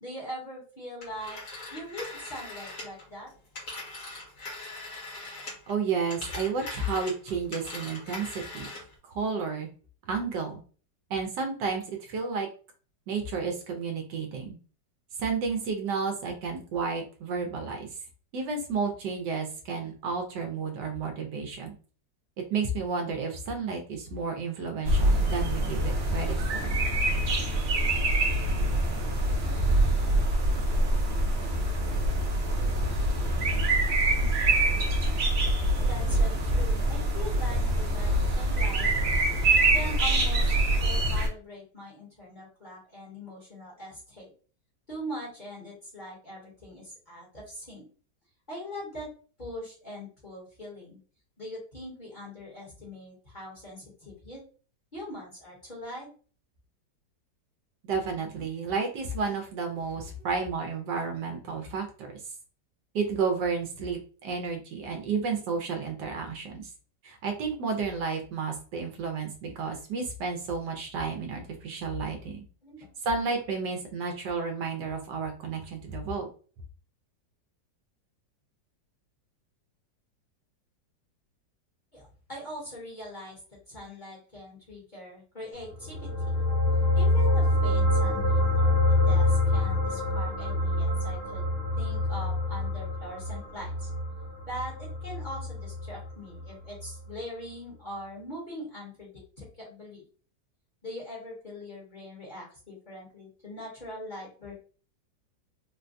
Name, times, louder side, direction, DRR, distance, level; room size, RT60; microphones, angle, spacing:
voice 1, 0.0-1.4 1.7-3.3 34.1-34.3 35.9-38.9 39.7-44.3 44.9-47.8 48.5-49.1 49.4-51.0 51.4-54.4 54.9-56.1 72.6-72.9 81.9-83.4 83.7-86.3 86.9-91.5 91.7-93.9 94.5-100.0 100.8-104.5, equal, 30° left, -5 dB, 1.1 m, -42 dB
Telephone, 1.0-5.7 6.0-8.9, left 2 dB, 50° left, 1.6 m, -41 dB
voice 2, 5.7-8.7 9.0-9.7 10.1-10.6 11.1-12.5 13.1-14.6 15.2-17.9 18.3-21.7 22.5-26.8 57.8-62.1 62.9-66.7 67.0-72.4 73.0-76.3, right 5 dB, 75° right, 3 dB, 1.2 m, -31 dB
sound 1, 24.8-41.3, right 1 dB, 50° right, 0.8 m, -25 dB
sound 2, 85.7-96.5 96.8-96.9, left 2 dB, 75° left, 0.5 m, -26 dB
3.8 x 2.2 x 2.5 m, 0.39 s
omnidirectional pair, 1.9 m